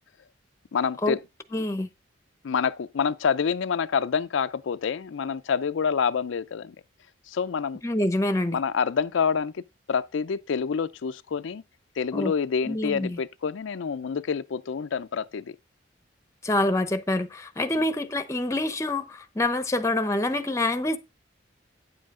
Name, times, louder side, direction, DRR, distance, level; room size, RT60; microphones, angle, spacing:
voice 1, 0.7-1.2 2.4-6.8 7.3-7.8 8.5-9.6 9.9-11.6 12.0-15.5, left 6 dB, 75° left, 0.4 m, -27 dB
voice 2, 1.5-1.9 7.8-8.6 12.1-12.3 12.7-13.2 16.4-21.0, left 1 dB, 15° left, 0.7 m, -26 dB
9.4 x 7.5 x 3.7 m
head